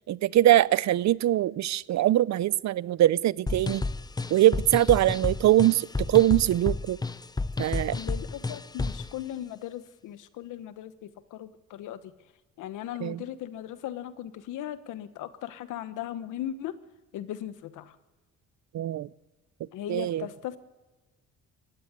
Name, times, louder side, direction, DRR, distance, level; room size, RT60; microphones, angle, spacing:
voice 1, 0.1-3.8 4.3-7.0 7.6-8.0 13.0-13.2 18.7-19.1 19.9-20.3, right 13 dB, 65° right, 20 dB, 0.6 m, -22 dB
sound 1, 3.5-9.1, left 3 dB, 15° left, 0.6 m, -31 dB
voice 2, 7.9-12.0 12.6-16.7 17.1-17.9 19.7-20.6, left 11 dB, 90° left, 12 dB, 1.2 m, -38 dB
21.0 x 16.0 x 9.6 m, 1.2 s
cardioid pair, 90°, 30 cm